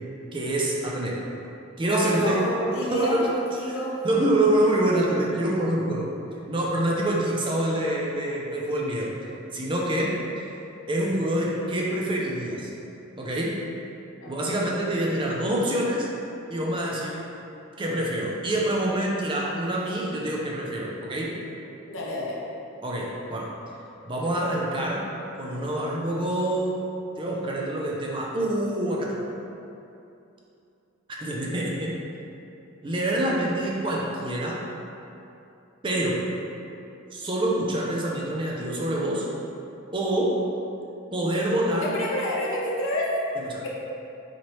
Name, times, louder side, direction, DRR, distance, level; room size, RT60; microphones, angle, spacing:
voice 1, 0.3-1.2 1.8-2.4 2.8-3.3 4.0-6.1 6.5-9.1 9.5-10.5 10.9-12.7 13.2-13.6 14.3-16.1 16.5-17.2 17.8-21.4 22.8-23.5 24.1-25.1 25.4-26.8 27.2-29.2 31.1-32.0 32.8-34.6 35.8-36.2 37.1-39.3 39.9-40.4 41.1-41.9 43.5-43.6, right 1 dB, 25° right, -3 dB, 0.4 m, -26 dB
voice 2, 1.9-4.0 9.8-9.9 14.2-14.5 21.9-22.4 41.8-43.1 43.6-43.7, equal, 90° left, -4 dB, 0.8 m, -28 dB
4.0 x 3.1 x 2.9 m, 2.7 s
head